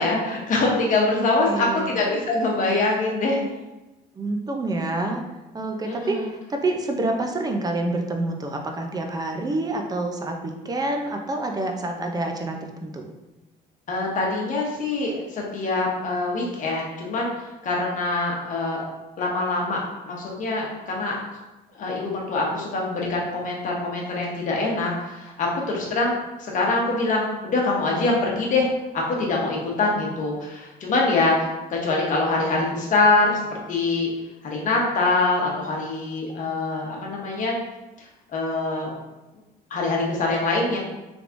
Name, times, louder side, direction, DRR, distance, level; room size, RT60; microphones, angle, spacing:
voice 1, 0.0-3.4 5.8-6.3 13.9-18.8 19.2-21.2 21.7-28.7 28.9-33.4 33.7-34.1 34.4-37.5 38.0-38.9 39.7-40.8, left 3 dB, 50° left, -2 dB, 1.0 m, -24 dB
voice 2, 1.1-1.9 4.1-5.2 5.5-13.1, right 2 dB, 20° right, 3 dB, 0.5 m, -27 dB
3.4 x 3.1 x 2.5 m, 1.0 s
cardioid pair, 110°, 17 cm